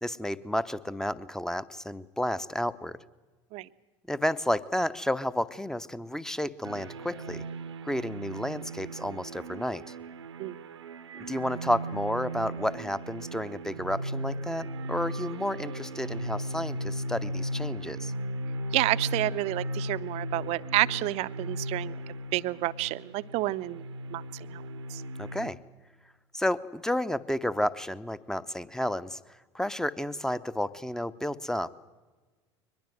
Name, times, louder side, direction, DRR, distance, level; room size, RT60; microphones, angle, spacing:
voice 1, 0.0-3.0 4.1-7.4 7.8-9.9 11.3-18.1 25.2-25.6 26.3-29.2 29.5-31.8, left 1 dB, 5° left, 16 dB, 0.8 m, -31 dB
sound 1, 6.6-25.5, right 1 dB, 75° right, 0.9 m, -37 dB
voice 2, 18.7-22.0 22.3-23.8 24.1-24.6 24.9-25.0, right 18 dB, 50° right, 17 dB, 0.6 m, -29 dB
22.5 x 21.0 x 7.8 m, 1.3 s
figure-of-eight pair, 70°, 14 cm